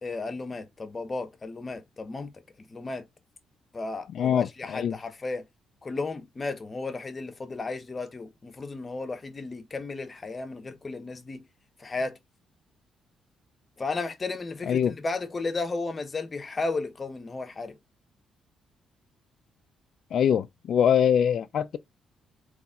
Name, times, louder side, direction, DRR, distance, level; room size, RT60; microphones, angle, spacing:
voice 1, 0.0-2.3 2.7-3.0 3.7-5.4 5.8-11.4 11.8-12.1 13.8-17.7, left 3 dB, 30° left, 1.1 m, -34 dB
voice 2, 4.1-5.0 14.7-15.0 20.1-21.8, left 8 dB, 65° left, 0.5 m, -23 dB
4.1 x 3.5 x 3.7 m
cardioid pair, 90°, 0 cm